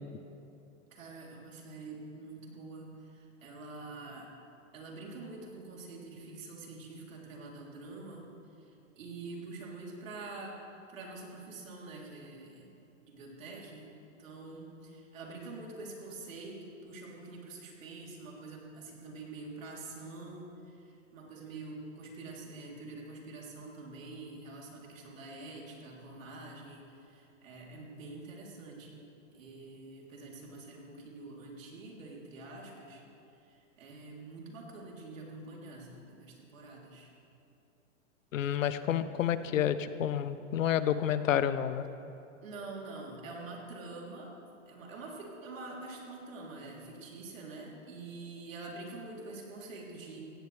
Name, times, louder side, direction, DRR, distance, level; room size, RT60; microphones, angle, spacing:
voice 1, 0.9-4.3 4.7-8.3 8.6-10.6 10.9-12.7 13.1-13.9 14.2-29.1 29.3-33.0 33.5-37.1 42.4-44.3 44.7-50.2, right 3 dB, 80° right, -2 dB, 3.7 m, -46 dB
voice 2, 38.3-41.9, left 10 dB, 75° left, 13 dB, 0.9 m, -29 dB
17.0 x 16.5 x 3.5 m, 2.7 s
hypercardioid pair, 145°, 39 cm